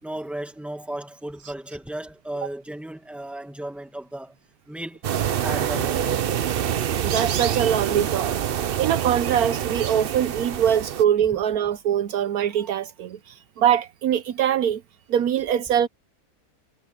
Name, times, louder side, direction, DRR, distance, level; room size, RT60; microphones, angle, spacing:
voice 1, 0.0-4.4 4.7-5.0 5.4-6.3, right 1 dB, ahead, 2.1 m, -35 dB
sound 1, 5.0-11.0, right 9 dB, 55° right, 0.6 m, -26 dB
voice 2, 7.0-8.4 8.8-14.8 15.1-15.9, right 9 dB, 75° right, 1.2 m, -23 dB
omnidirectional pair, 1.6 m